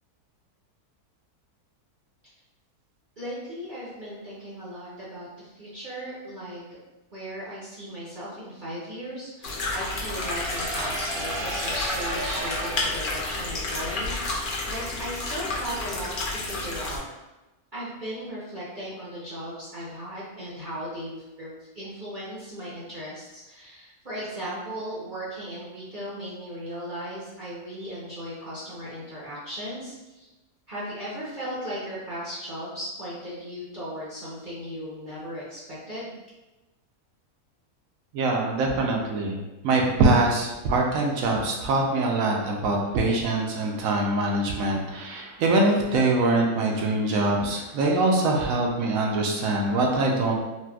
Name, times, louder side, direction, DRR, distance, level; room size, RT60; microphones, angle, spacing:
voice 1, 3.2-6.8 7.1-17.0 17.7-30.3 30.7-36.1, equal, 45° right, -9 dB, 0.7 m, -37 dB
sound 1, 9.4-17.0, left 2 dB, 80° left, 0.4 m, -31 dB
sound 2, 9.5-14.2, right 2 dB, 85° right, 1.2 m, -35 dB
voice 2, 38.1-39.4 39.6-50.4, right 2 dB, 70° right, 0 dB, 0.9 m, -23 dB
4.1 x 2.2 x 2.3 m, 1.1 s
omnidirectional pair, 1.6 m